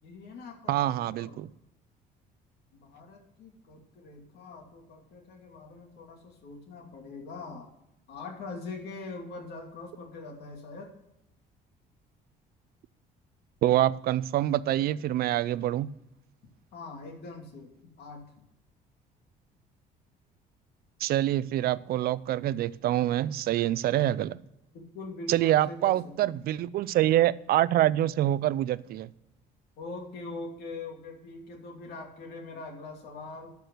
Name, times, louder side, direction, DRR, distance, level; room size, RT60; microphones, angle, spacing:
voice 1, 0.0-1.4 2.7-7.7 8.1-10.9 16.7-17.7 18.0-18.3 24.7-26.4 29.8-33.5, left 3 dB, 75° left, 2.8 m, -42 dB
voice 2, 0.7-1.5 13.6-15.9 21.0-24.4 25.3-29.1, right 13 dB, 65° right, 0.5 m, -26 dB
13.0 x 4.8 x 7.9 m
cardioid pair, 110°, 17 cm